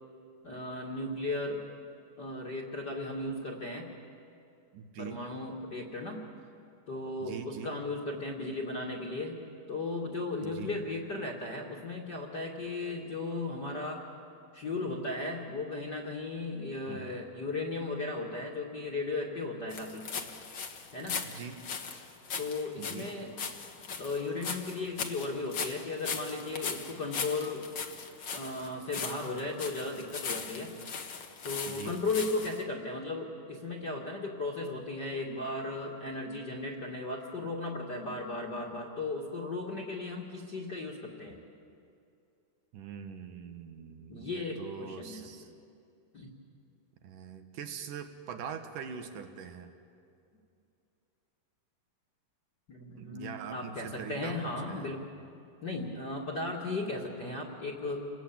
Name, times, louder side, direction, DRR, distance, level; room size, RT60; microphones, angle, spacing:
voice 1, 0.4-1.6 2.2-3.9 5.0-6.3 6.9-9.4 9.7-14.0 14.5-20.1 20.9-21.2 22.4-23.3 24.0-27.7 28.3-30.7 31.4-41.4 44.1-45.3 46.1-46.3 52.7-55.0 55.6-58.0, left 2 dB, 35° left, 0 dB, 2.1 m, -36 dB
voice 2, 4.7-5.2 7.2-7.7 10.4-10.8 16.9-17.2 21.3-21.7 22.8-23.1 31.7-32.0 42.7-45.5 47.0-49.7 53.0-54.9, right 7 dB, 65° right, 7 dB, 2.8 m, -43 dB
sound 1, 19.7-32.6, left 5 dB, 50° left, 1.3 m, -39 dB
29.0 x 20.5 x 8.7 m, 2.5 s
omnidirectional pair, 4.2 m